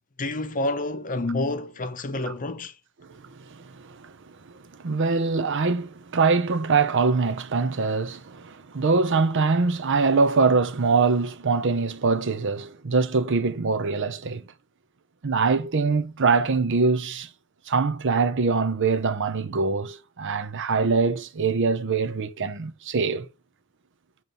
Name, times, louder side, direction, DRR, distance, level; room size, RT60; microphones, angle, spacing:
voice 1, 0.2-2.7, left 2 dB, 40° left, 0.7 m, -28 dB
voice 2, 3.1-4.2 4.4-4.5 4.8-14.4 15.2-17.3 17.7-23.3, right 4 dB, 60° right, 0.7 m, -23 dB
7.2 x 3.2 x 5.2 m
head